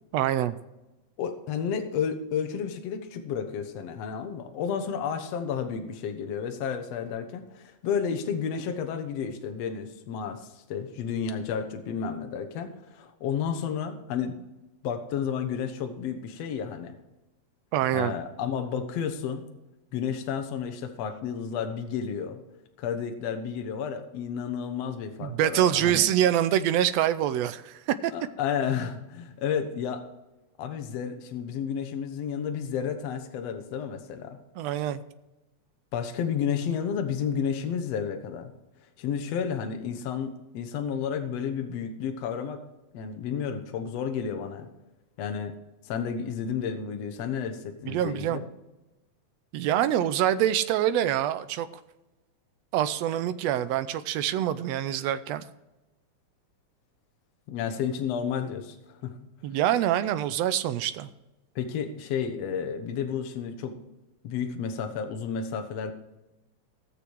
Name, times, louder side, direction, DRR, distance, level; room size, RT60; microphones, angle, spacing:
voice 1, 0.1-0.5 17.7-18.1 25.2-28.1 34.6-35.0 47.9-48.4 49.5-51.7 52.7-55.4 59.4-61.1, right 11 dB, 75° right, 12 dB, 1.6 m, -25 dB
voice 2, 1.2-14.4 14.8-16.9 17.9-19.4 19.9-22.4 22.8-26.1 28.1-30.0 30.6-34.4 35.9-38.5 39.0-42.6 42.9-44.7 45.2-45.5 45.8-48.5 57.5-59.2 61.6-63.8 64.2-65.9, left 7 dB, 65° left, 6 dB, 2.0 m, -31 dB
17.0 x 6.9 x 4.6 m, 0.98 s
omnidirectional pair, 3.4 m